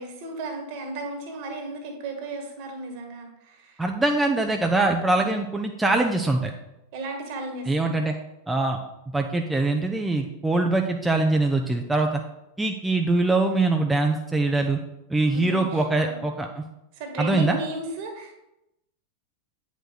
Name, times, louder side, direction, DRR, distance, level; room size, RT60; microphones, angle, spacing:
voice 1, 0.0-3.8 5.1-5.3 6.9-7.9 15.3-16.2 16.9-18.4, right 2 dB, 45° right, 4 dB, 1.7 m, -35 dB
voice 2, 3.8-6.5 7.7-8.1 8.5-8.8 9.1-12.2 12.6-14.8 15.1-16.6 17.2-17.6, right 2 dB, 10° right, 3 dB, 0.6 m, -23 dB
8.8 x 5.2 x 4.0 m, 0.88 s
figure-of-eight pair, 90°, 0 cm